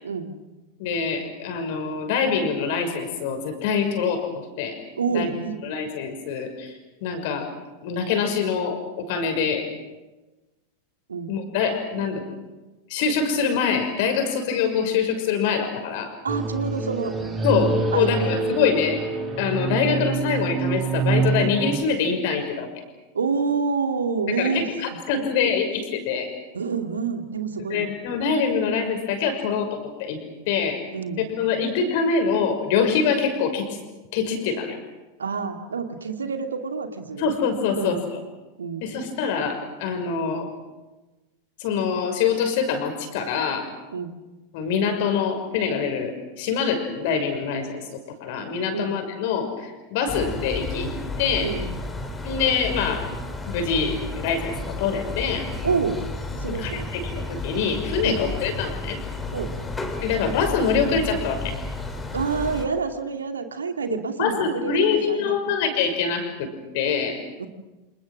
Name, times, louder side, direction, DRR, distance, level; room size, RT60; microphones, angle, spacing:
voice 1, 0.0-0.3 5.0-5.6 11.1-11.3 12.0-12.1 16.2-17.1 17.5-18.4 23.1-24.7 25.2-25.5 26.5-27.9 30.9-31.3 35.2-37.3 37.8-38.0 38.6-38.9 43.9-44.1 48.7-48.9 51.4-51.7 55.6-56.0 56.4-56.9 58.0-58.2 59.3-59.6 62.1-64.8 65.1-65.6 67.4-67.5, right 5 dB, 70° right, 6 dB, 2.4 m, -27 dB
voice 2, 0.8-4.8 5.1-5.3 5.6-6.7 7.0-7.5 7.8-9.7 11.3-12.2 12.9-16.1 17.4-19.0 19.4-22.8 24.4-26.3 27.7-30.2 30.5-30.8 31.4-33.8 34.1-34.8 37.2-38.2 38.8-40.5 41.6-43.7 44.5-47.8 48.2-51.5 52.2-53.1 53.5-55.5 56.4-59.0 60.0-61.5 63.9-67.2, left 6 dB, 50° left, 6 dB, 6.0 m, -25 dB
sound 1, 16.3-21.8, right 4 dB, 20° right, 5.8 m, -26 dB
sound 2, 50.1-62.7, left 2 dB, 15° left, 3.8 m, -32 dB
29.0 x 27.5 x 6.3 m, 1.2 s
figure-of-eight pair, 90°, 0 cm